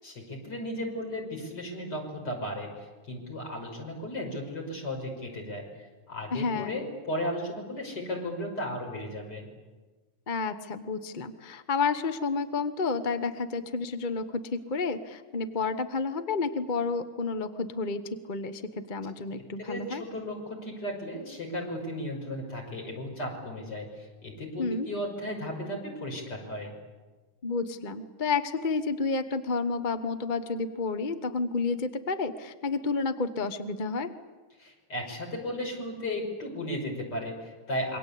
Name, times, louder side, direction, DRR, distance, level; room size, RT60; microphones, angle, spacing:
voice 1, 0.0-9.5 19.6-26.7 34.6-38.0, left 1 dB, 70° left, 1 dB, 6.4 m, -35 dB
voice 2, 6.3-6.7 10.3-18.0 18.3-20.0 24.6-24.9 27.4-34.1, left 4 dB, 30° left, 9 dB, 1.0 m, -30 dB
27.5 x 23.5 x 8.5 m, 1.3 s
omnidirectional pair, 1.9 m